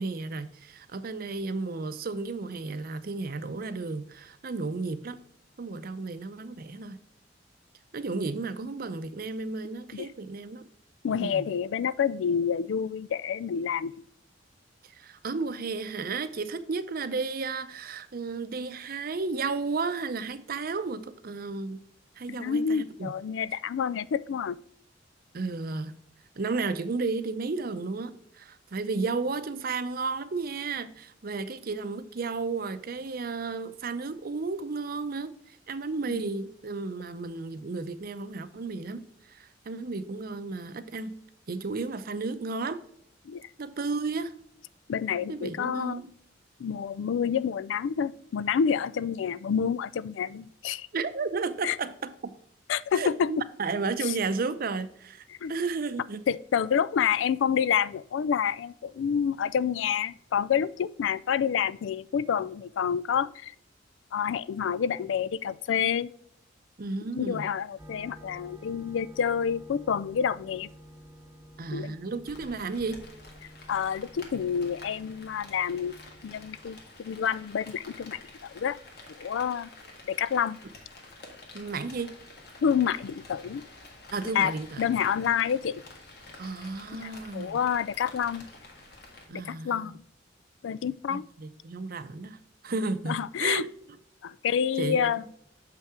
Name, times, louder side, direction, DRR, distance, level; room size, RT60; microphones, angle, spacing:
voice 1, 0.0-5.2 5.6-7.0 7.9-10.6 11.2-11.5 14.8-21.8 22.2-23.1 25.3-26.0 26.4-41.2 41.5-42.8 43.6-44.3 45.3-46.1 50.9-52.3 52.9-56.3 66.8-67.5 71.6-73.0 81.5-82.1 84.1-84.9 86.4-87.6 89.3-89.9 91.1-93.7 94.8-95.3, right 4 dB, 50° right, 0.6 m, -33 dB
voice 2, 11.0-13.9 22.3-24.6 36.1-36.3 43.3-43.5 44.9-46.0 46.6-50.9 51.6-51.8 52.7-53.4 54.1-54.2 55.4-55.5 56.3-63.5 64.1-66.1 67.1-70.7 71.7-71.9 73.7-78.8 79.1-79.7 80.1-80.6 82.6-83.6 84.3-85.8 86.9-88.5 89.3-90.0 90.6-91.2 93.1-93.6 94.2-95.2, left 7 dB, 80° left, 0.3 m, -28 dB
sound 1, 67.8-76.7, equal, 15° right, 0.8 m, -51 dB
Rain, 72.3-89.3, left 2 dB, 60° left, 1.6 m, -49 dB
6.8 x 5.6 x 3.6 m
head